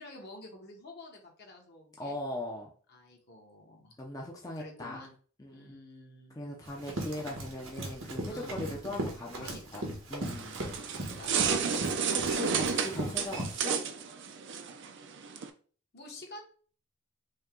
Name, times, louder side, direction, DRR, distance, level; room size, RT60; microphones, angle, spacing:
voice 1, 0.0-2.1 2.9-3.9 4.6-5.1 5.5-6.3 8.3-8.6 9.3-9.9 10.9-12.2 15.9-16.4, left 2 dB, 55° left, 0 dB, 1.4 m, -49 dB
voice 2, 2.0-2.7 4.0-5.0 5.4-5.7 6.4-10.6 12.1-13.8, left 1 dB, 15° left, -2 dB, 0.6 m, -39 dB
Run, 6.7-13.5, right 1 dB, 90° right, 1.4 m, -38 dB
sound 1, 10.2-15.5, right 6 dB, 60° right, 0.5 m, -32 dB
5.3 x 2.3 x 3.7 m, 0.42 s
head